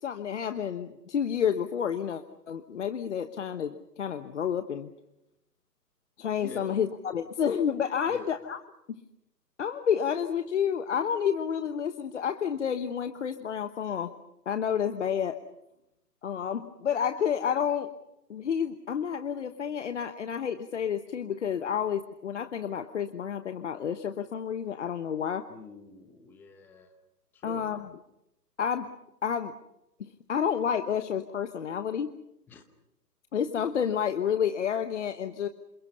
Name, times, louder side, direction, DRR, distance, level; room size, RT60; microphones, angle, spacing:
voice 1, 0.0-4.9 6.2-8.6 8.9-9.0 9.6-14.1 14.5-15.4 16.2-17.9 18.3-25.4 27.4-27.9 28.6-28.9 29.2-29.5 30.3-32.1 33.3-35.5, left 8 dB, 45° left, 10 dB, 1.2 m, -30 dB
voice 2, 6.4-6.7 8.1-8.3 25.5-26.9 27.3-27.7 32.5-32.6, left 4 dB, 5° left, 7 dB, 0.9 m, -46 dB
28.0 x 27.5 x 5.6 m, 0.86 s
figure-of-eight pair, 140°, 50 cm